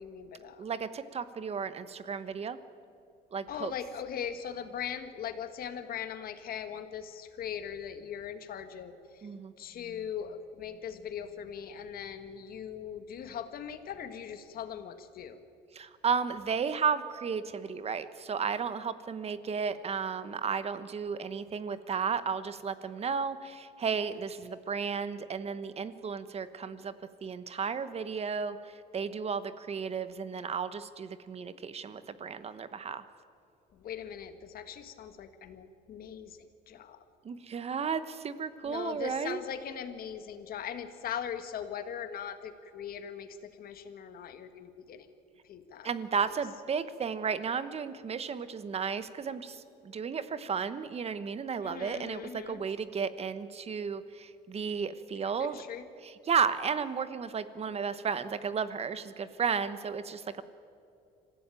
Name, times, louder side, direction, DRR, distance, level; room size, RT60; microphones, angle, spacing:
voice 1, 0.0-0.7 3.5-9.3 9.6-15.4 33.7-36.4 36.7-37.0 38.6-45.1 45.4-45.9 46.3-46.4 51.6-52.6 55.4-55.9, left 8 dB, 60° left, 9 dB, 1.8 m, -40 dB
voice 2, 0.6-2.6 3.3-3.7 9.2-9.5 15.7-26.9 27.2-33.0 37.2-39.4 45.8-55.6 56.0-60.4, right 6 dB, 35° right, 13 dB, 1.2 m, -33 dB
25.5 x 15.5 x 9.1 m, 2.5 s
cardioid pair, 110°, 17 cm